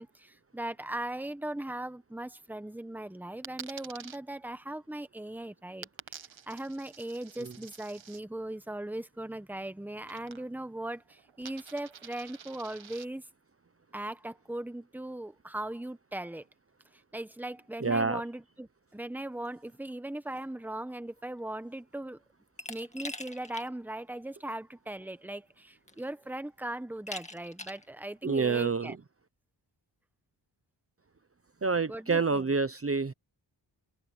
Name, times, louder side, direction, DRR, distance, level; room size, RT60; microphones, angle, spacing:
voice 1, 0.0-5.9 6.5-13.2 13.9-16.4 17.1-22.2 22.7-28.9 31.9-32.5, right 1 dB, 5° right, 1.2 m, -39 dB
Coin (dropping), 3.4-4.2 5.8-8.2 10.1-10.7 11.0-13.1, right 7 dB, 85° right, 1.7 m, -48 dB
voice 2, 17.8-18.2 28.2-29.0 31.6-33.1, right 4 dB, 30° right, 1.0 m, -28 dB
Glass, 22.6-23.7 24.1-24.2 25.3-25.4 25.9-26.3 27.1-27.9, left 2 dB, 15° left, 2.1 m, -42 dB
open air
wide cardioid pair, 110°, 45 cm